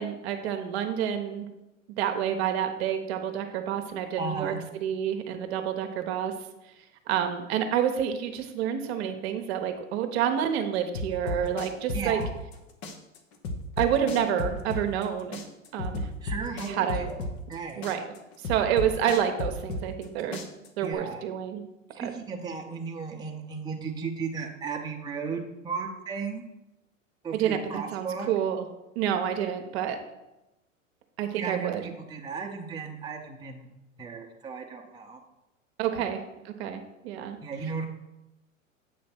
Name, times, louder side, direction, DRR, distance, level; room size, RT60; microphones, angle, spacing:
voice 1, 0.0-1.5 2.0-4.5 4.8-6.3 7.1-12.2 13.8-15.4 15.7-16.0 16.7-17.1 17.8-18.0 18.4-20.4 20.8-21.6 22.0-22.1 27.3-28.7 29.0-30.0 31.2-31.8 35.8-36.2 36.4-37.4, right 9 dB, 50° right, 6 dB, 0.9 m, -28 dB
voice 2, 4.2-4.6 11.9-12.3 16.2-17.2 17.5-17.9 20.8-21.2 21.9-26.4 27.2-28.3 31.4-33.7 34.0-35.2 35.9-36.0 37.4-37.9, right 5 dB, 10° right, 0 dB, 0.8 m, -35 dB
sound 1, 10.9-12.6 12.8-15.1 15.3-17.6 17.8-20.1 20.3-20.9, left 2 dB, 50° left, 1.1 m, -33 dB
8.0 x 3.1 x 6.0 m, 0.97 s
hypercardioid pair, 100°, 40 cm